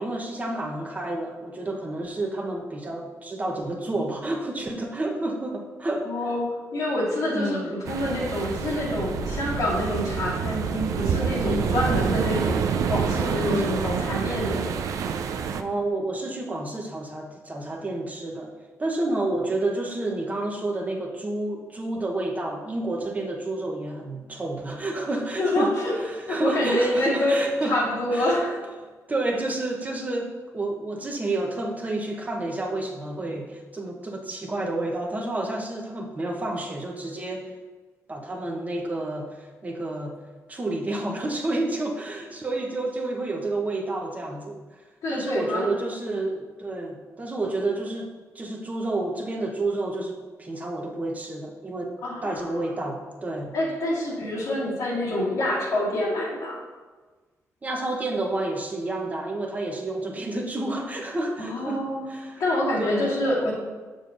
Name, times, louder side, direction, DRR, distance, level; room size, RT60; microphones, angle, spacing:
voice 1, 0.0-6.1 7.3-7.7 11.4-11.8 13.5-13.9 15.5-18.5 18.8-27.8 28.1-28.4 29.1-37.5 38.1-40.1 40.5-44.6 45.1-52.0 52.2-53.5 57.6-62.4 62.8-63.1, right 2 dB, 25° right, 1 dB, 0.9 m, -30 dB
voice 2, 6.0-14.7 25.4-25.9 26.3-27.4 27.7-28.6 45.0-45.7 52.0-52.5 53.5-56.6 61.4-62.1 62.4-63.5, left 1 dB, 80° left, -5 dB, 1.9 m, -26 dB
sound 1, 7.8-15.6, right 6 dB, 75° right, 0.4 m, -27 dB
6.8 x 6.3 x 2.5 m, 1.3 s
cardioid pair, 100°, 6 cm